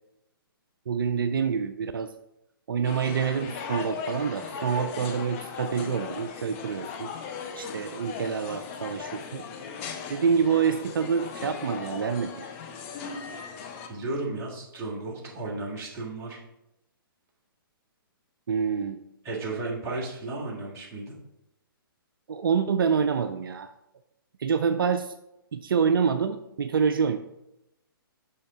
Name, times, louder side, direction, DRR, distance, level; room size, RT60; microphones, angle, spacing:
voice 1, 0.9-2.1 2.7-7.1 7.6-9.4 10.1-12.5 18.5-19.0 22.3-23.7 24.4-25.1 25.5-27.2, right 6 dB, 70° right, 9 dB, 0.4 m, -26 dB
sound 1, 2.8-13.9, left 6 dB, 30° left, 0.7 m, -38 dB
voice 2, 13.9-16.4 19.2-21.2, right 2 dB, 20° right, -3 dB, 1.6 m, -34 dB
6.2 x 5.6 x 3.5 m, 0.86 s
figure-of-eight pair, 130°, 12 cm